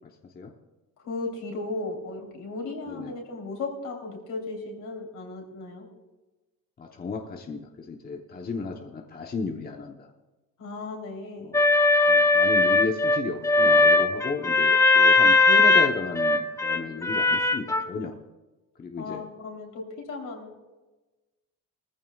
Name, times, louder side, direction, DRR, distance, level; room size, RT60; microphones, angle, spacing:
voice 1, 1.0-5.9 10.6-11.5 19.0-20.7, left 3 dB, 65° left, 0 dB, 3.5 m, -36 dB
voice 2, 6.8-10.1 11.4-11.6 12.1-18.1 18.8-19.2, left 4 dB, 30° left, 2 dB, 0.9 m, -34 dB
sound 1, 11.5-17.8, left 3 dB, 10° left, 0.5 m, -19 dB
20.0 x 14.5 x 2.4 m, 1.1 s
cardioid pair, 140°, 33 cm